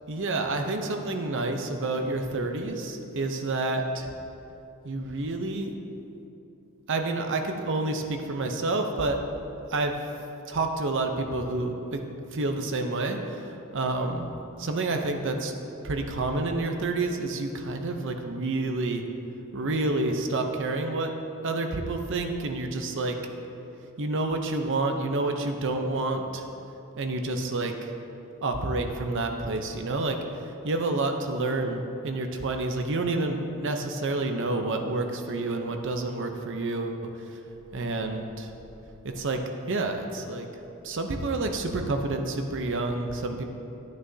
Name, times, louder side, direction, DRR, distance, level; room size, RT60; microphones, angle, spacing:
voice 1, 0.1-4.1 4.8-5.7 6.9-9.2 9.7-9.9 10.5-12.0 12.3-14.3 14.6-15.5 15.8-19.0 19.5-21.2 21.4-23.2 24.0-26.4 27.0-27.9 28.4-30.2 30.6-37.1 37.7-38.5 39.0-40.5 40.8-43.4, right 2 dB, 60° right, 5 dB, 0.7 m, -29 dB
11.0 x 9.6 x 2.8 m, 2.9 s
head